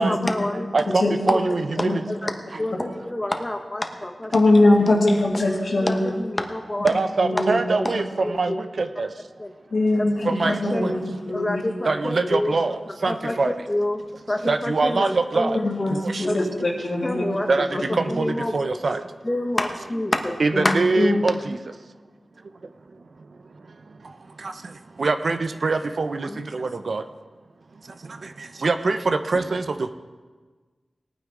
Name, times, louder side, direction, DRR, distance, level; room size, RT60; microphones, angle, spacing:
voice 1, 0.0-0.7 1.0-1.7 2.1-2.3 2.6-4.4 4.9-5.0 5.7-6.9 7.3-7.4 7.8-8.0 8.2-8.6 9.4-9.5 10.2-11.0 11.3-12.5 13.1-13.4 13.7-14.0 14.3-15.9 16.2-16.3 17.0-17.8 18.1-18.6 19.2-21.1 26.3-26.4, left 1 dB, 25° left, 4 dB, 1.4 m, -27 dB
voice 2, 0.7-2.0 6.8-9.1 10.2-10.9 11.9-13.5 14.4-15.6 15.9-16.2 17.5-17.7 17.9-19.0 20.4-21.6 24.4-24.5 25.0-27.0 28.6-29.9, right 3 dB, 70° right, 8 dB, 0.7 m, -23 dB
voice 3, 4.3-6.1 7.2-7.9 9.7-11.0 11.3-11.7 12.2-12.3 15.6-17.2 20.6-21.2, left 2 dB, 75° left, -1 dB, 2.3 m, -21 dB
18.5 x 9.3 x 3.8 m, 1.4 s
cardioid pair, 55°, 0 cm